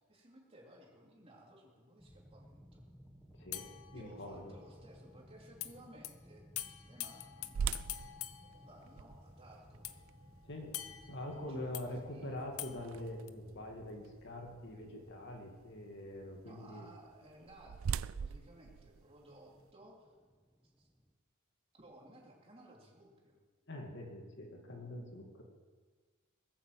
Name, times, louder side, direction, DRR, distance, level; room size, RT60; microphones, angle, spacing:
voice 1, 0.0-2.8 3.9-6.4 6.8-8.1 8.6-9.9 11.2-12.4 16.4-20.1 20.8-20.9 21.7-23.4, right 1 dB, 30° right, -2 dB, 3.3 m, -58 dB
sound 1, 2.0-21.1, equal, ahead, 1.3 m, -60 dB
sound 2, 3.5-4.7 5.6-5.7 6.0-6.1 6.6-9.3 9.8-11.9 12.6-13.3, left 13 dB, 85° left, 0.8 m, -46 dB
voice 2, 3.9-4.5 10.4-10.8 11.1-16.9 23.7-25.5, left 1 dB, 55° left, 1 dB, 2.4 m, -44 dB
sound 3, 7.5-13.5 14.0-14.1 14.7-15.0 17.0-19.7, right 6 dB, 70° right, 0.4 m, -42 dB
19.5 x 8.5 x 7.6 m, 1.4 s
head